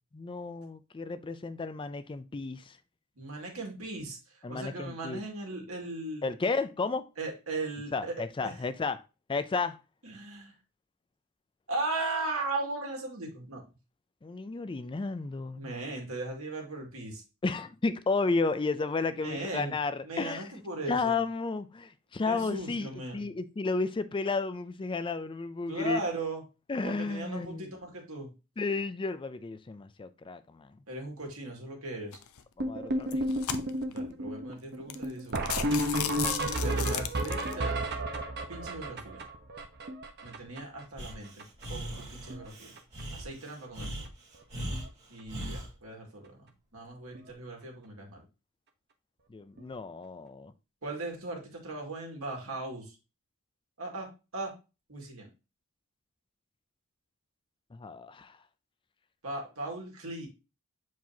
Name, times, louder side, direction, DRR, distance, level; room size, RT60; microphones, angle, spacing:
voice 1, 0.1-2.8 4.4-5.2 6.2-7.1 7.9-9.0 9.3-9.8 14.2-15.7 17.4-20.4 20.9-26.0 26.7-27.7 28.6-30.7 32.6-33.2 49.3-50.5 57.7-58.4, left 3 dB, 25° left, 0.4 m, -32 dB
voice 2, 3.2-4.2 4.5-6.3 7.2-8.2 8.4-8.5 10.0-10.5 11.7-13.6 15.5-17.2 19.2-19.7 20.0-21.2 22.3-23.3 25.7-26.4 26.8-28.3 30.9-32.2 33.9-35.5 36.5-37.8 38.5-39.2 40.2-42.7 43.1-44.1 45.1-48.2 50.8-53.0 53.8-54.1 54.3-54.5 54.9-55.3 59.2-60.3, right 2 dB, 70° right, 2.2 m, -38 dB
sound 1, 32.1-32.4 33.0-34.0 34.5-34.6 34.9-35.0 35.3-37.5, left 10 dB, 75° left, 0.6 m, -35 dB
sound 2, 32.6-40.8 41.1-41.2 41.4-41.7 41.9-42.5 42.8-43.0 43.8-43.9 44.3-44.4 44.7-44.9 47.2-47.3 49.6-49.7, right 1 dB, 50° right, 0.9 m, -32 dB
Breathing, 41.0-45.7, equal, 30° right, 2.1 m, -39 dB
7.6 x 4.6 x 2.8 m
head